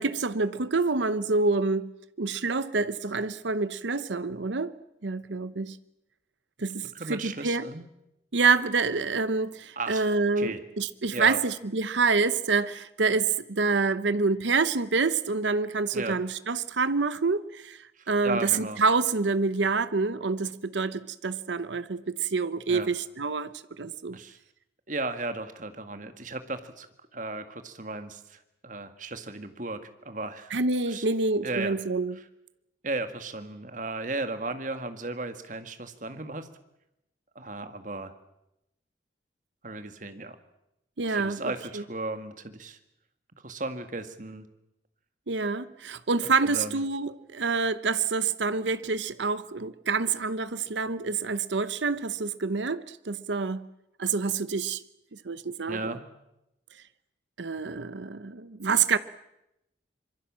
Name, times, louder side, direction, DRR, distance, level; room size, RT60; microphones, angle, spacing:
voice 1, 0.0-1.9 2.2-4.7 5.0-5.8 6.6-7.7 8.3-17.8 18.1-24.2 30.5-32.2 41.0-41.4 41.7-41.8 45.3-53.7 54.0-54.8 55.2-55.9 57.4-59.0, right 4 dB, 80° right, 0.9 m, -27 dB
voice 2, 6.9-7.8 9.8-10.1 10.4-10.6 11.1-11.4 15.9-16.2 18.0-18.8 22.7-22.9 24.1-24.4 24.9-26.9 27.1-29.8 30.1-30.6 30.9-31.1 31.4-31.8 32.8-36.5 37.4-38.1 39.6-40.4 41.0-42.8 43.4-44.5 46.4-46.8 55.7-56.0, right 2 dB, 45° right, 1.9 m, -35 dB
25.5 x 23.0 x 7.5 m
head